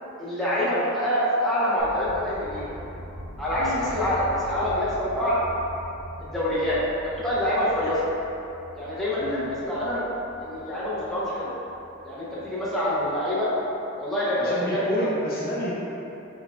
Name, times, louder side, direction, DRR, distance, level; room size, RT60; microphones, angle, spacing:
voice 1, 0.2-2.7 3.4-5.4 6.2-8.0 8.8-10.0 10.4-11.5 12.0-13.5 14.0-14.9, left 1 dB, ahead, -10 dB, 0.7 m, -26 dB
sound 1, 1.8-13.7, right 1 dB, 80° right, 0.9 m, -42 dB
voice 2, 14.4-15.7, equal, 45° left, -6 dB, 0.8 m, -29 dB
4.4 x 4.3 x 2.4 m, 3.0 s
head